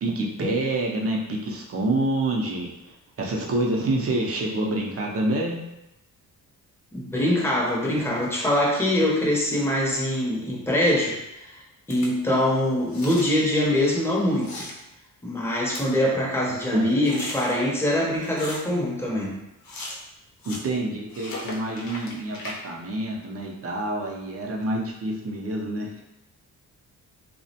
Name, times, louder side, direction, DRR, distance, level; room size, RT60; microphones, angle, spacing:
voice 1, 0.0-5.6 16.7-16.9 20.4-26.0, right 2 dB, 40° right, -1 dB, 0.5 m, -27 dB
voice 2, 6.9-11.6 11.9-14.7 15.2-19.4, left 1 dB, 5° left, -4 dB, 0.7 m, -23 dB
sound 1, 11.9-12.1 12.8-13.3 14.2-14.7 15.4-15.5 15.7-15.8 17.0-17.5 18.2-18.8 19.6-20.1 20.4-20.6 21.1-22.5, left 2 dB, 80° left, 0.7 m, -37 dB
2.3 x 2.1 x 2.7 m, 0.90 s
cardioid pair, 90°, 35 cm